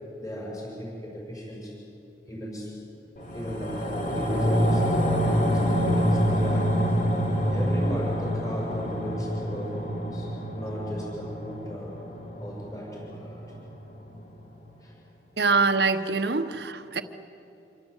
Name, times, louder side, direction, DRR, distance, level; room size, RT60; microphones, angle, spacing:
voice 1, 0.2-1.8 2.3-2.8 3.3-6.8 7.5-12.0 12.4-13.4 14.8-14.9, equal, 20° left, -3 dB, 6.7 m, -36 dB
sound 1, 3.2-13.8 14.1-14.2, equal, 45° left, 3.5 m, -26 dB
voice 2, 15.4-17.0, right 4 dB, 65° right, 9 dB, 1.3 m, -24 dB
27.0 x 24.5 x 8.3 m, 2.8 s
head